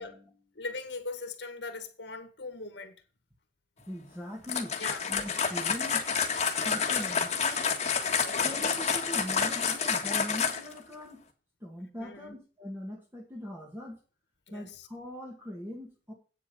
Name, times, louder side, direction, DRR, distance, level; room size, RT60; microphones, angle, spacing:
voice 1, 0.0-0.4 3.9-4.8 5.1-6.0 6.5-7.7 8.4-11.2 11.6-14.0 14.5-16.1, left 1 dB, 15° right, 1.9 m, -41 dB
voice 2, 0.6-2.9 4.8-5.0 8.3-8.5 12.0-12.3 14.5-14.7, left 3 dB, 70° left, 1.9 m, -40 dB
sound 1, 4.4-10.8, left 6 dB, 35° left, 1.7 m, -29 dB
8.9 x 7.9 x 5.4 m
head